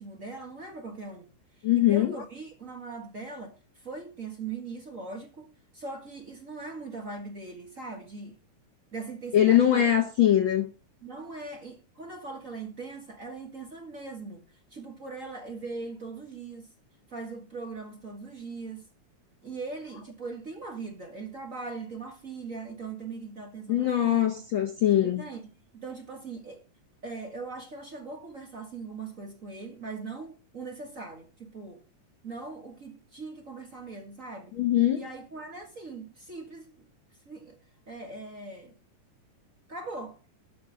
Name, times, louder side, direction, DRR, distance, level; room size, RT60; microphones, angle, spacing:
voice 1, 0.0-8.4 8.9-9.9 11.0-16.7 17.1-18.9 19.4-24.4 25.0-26.6 27.0-31.8 32.2-34.6 34.9-36.9 37.2-37.6 37.9-38.7 39.7-40.2, right 4 dB, 35° right, 1.5 m, -40 dB
voice 2, 1.6-2.1 9.3-10.7 23.7-25.2 34.6-35.0, left 11 dB, 85° left, 1.1 m, -22 dB
13.0 x 5.1 x 6.3 m
omnidirectional pair, 3.6 m